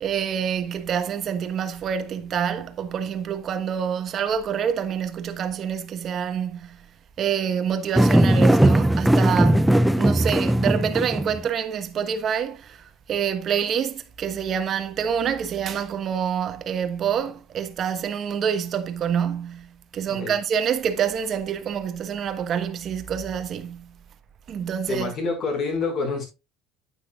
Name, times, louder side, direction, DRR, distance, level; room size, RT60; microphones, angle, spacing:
voice 1, 0.0-6.8 7.2-9.7 10.0-23.9 24.5-25.1, right 8 dB, 35° right, 1.2 m, -27 dB
sound 1, 7.9-11.5, right 1 dB, 5° right, 0.4 m, -18 dB
voice 2, 24.9-26.2, left 3 dB, 40° left, 5.4 m, -27 dB
9.5 x 9.2 x 2.4 m
cardioid pair, 140°, 0 cm